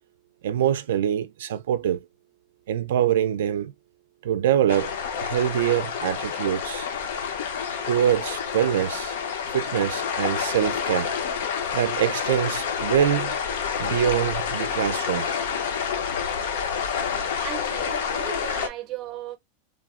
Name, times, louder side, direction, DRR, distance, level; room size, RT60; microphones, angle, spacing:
voice 1, 0.4-2.0 2.7-3.7 4.2-6.9 7.9-9.2 9.5-11.1 11.7-13.4 13.8-15.3, right 10 dB, 90° right, 0.3 m, -24 dB
sound 1, 4.7-18.7, left 7 dB, 80° left, 0.6 m, -28 dB
voice 2, 17.4-19.4, right 13 dB, 35° right, 0.6 m, -36 dB
3.4 x 2.0 x 2.3 m
supercardioid pair, 150°, 0 cm